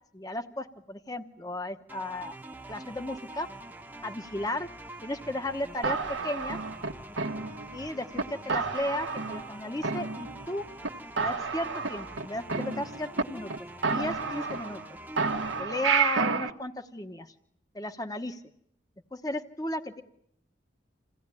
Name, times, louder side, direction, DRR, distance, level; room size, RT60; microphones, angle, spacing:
voice 1, 0.1-2.4 2.7-3.5 4.0-4.7 5.0-6.0 6.2-6.6 7.7-10.6 11.2-13.5 13.9-14.8 15.6-17.3 17.7-18.4 19.1-20.0, left 1 dB, 20° left, 7 dB, 1.0 m, -34 dB
sound 1, 1.9-15.6, right 1 dB, 10° right, 1.0 m, -45 dB
sound 2, 5.8-7.8 8.2-8.3 8.5-9.5 9.8-10.5 10.8-10.9 11.2-13.2 13.5-13.6 13.8-14.9 15.2-16.5, right 5 dB, 80° right, 1.4 m, -30 dB
28.0 x 17.5 x 9.7 m, 0.73 s
head